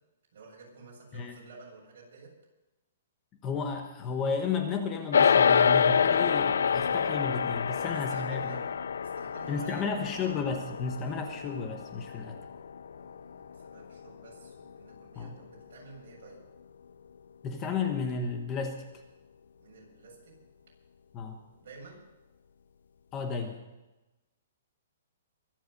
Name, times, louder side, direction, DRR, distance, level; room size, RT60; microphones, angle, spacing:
voice 1, 0.3-2.3 7.7-10.2 12.9-16.4 19.6-20.4 21.6-22.0, right 4 dB, 55° right, -2 dB, 7.5 m, -51 dB
voice 2, 3.4-8.6 9.5-12.4 15.2-15.4 17.4-18.8 21.1-21.4 23.1-23.6, left 5 dB, 15° left, 5 dB, 1.1 m, -33 dB
sound 1, 5.1-14.6, left 7 dB, 85° left, 0.4 m, -27 dB
23.5 x 8.0 x 6.5 m, 1.0 s
hypercardioid pair, 175°, 0 cm